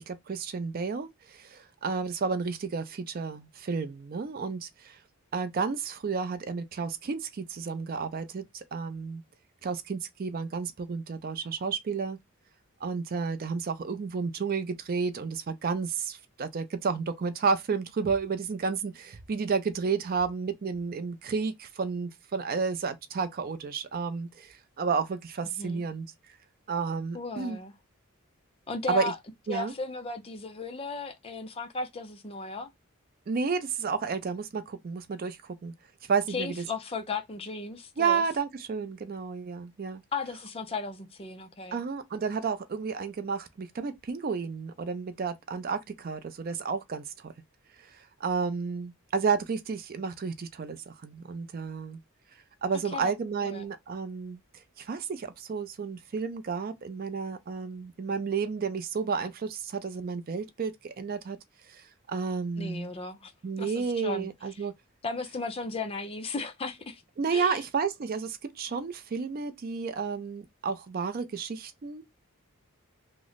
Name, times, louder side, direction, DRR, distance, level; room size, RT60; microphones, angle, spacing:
voice 1, 0.0-5.0 5.3-9.2 9.6-12.2 12.8-26.1 26.7-27.6 28.9-29.1 29.5-29.7 33.3-35.7 36.1-36.6 38.0-40.0 41.7-47.3 47.8-52.0 52.6-54.4 54.8-61.4 61.7-62.9 63.4-64.7 67.2-72.0, right 5 dB, 40° right, 0.4 m, -31 dB
voice 2, 27.1-27.7 28.7-29.2 29.5-32.7 36.3-38.2 40.1-41.8 52.9-53.1 53.4-53.7 62.6-63.3 63.6-64.3 65.0-67.0 67.3-67.6, left 3 dB, 25° left, 0.4 m, -35 dB
3.1 x 2.0 x 3.8 m
head